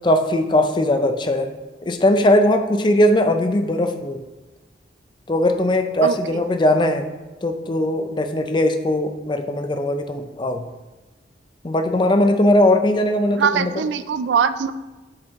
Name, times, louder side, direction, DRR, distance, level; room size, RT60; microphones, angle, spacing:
voice 1, 0.0-1.5 1.8-4.2 5.3-7.1 7.4-10.7 11.6-13.9, left 1 dB, 25° left, 8 dB, 0.4 m, -19 dB
voice 2, 6.0-6.4 13.3-14.7, right 7 dB, 70° right, 13 dB, 0.3 m, -22 dB
7.5 x 4.6 x 3.6 m, 1.1 s
head